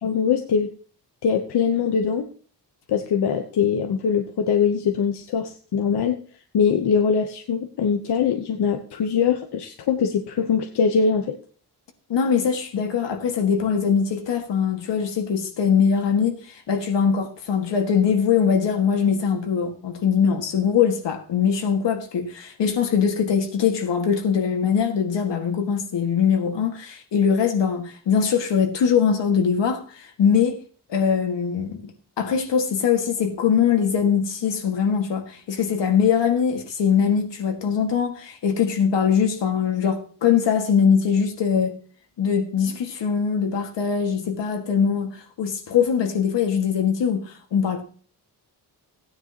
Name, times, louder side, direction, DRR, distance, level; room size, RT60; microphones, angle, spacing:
voice 1, 0.0-0.7 1.2-2.3 2.9-6.2 6.5-11.4, left 6 dB, 65° left, 1.0 m, -22 dB
voice 2, 12.1-16.4 16.7-30.6 30.9-41.7 42.2-45.1 45.4-47.8, left 7 dB, 85° left, 1.9 m, -22 dB
16.0 x 9.7 x 2.9 m
wide cardioid pair, 160°, 42 cm